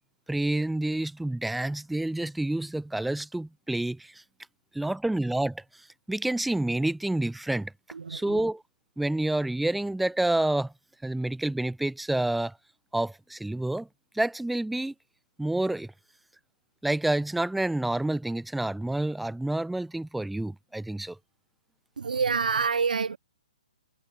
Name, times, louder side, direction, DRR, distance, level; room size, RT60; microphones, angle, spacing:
voice 1, 0.3-4.2 4.7-5.6 6.1-7.7 8.1-8.6 9.0-10.7 11.0-12.5 12.9-13.9 14.1-14.9 15.4-15.9 16.8-21.2, right 1 dB, ahead, 0.7 m, -28 dB
voice 2, 7.9-8.4 22.0-23.2, right 5 dB, 85° right, 5.7 m, -27 dB
hypercardioid pair, 175°, 4 cm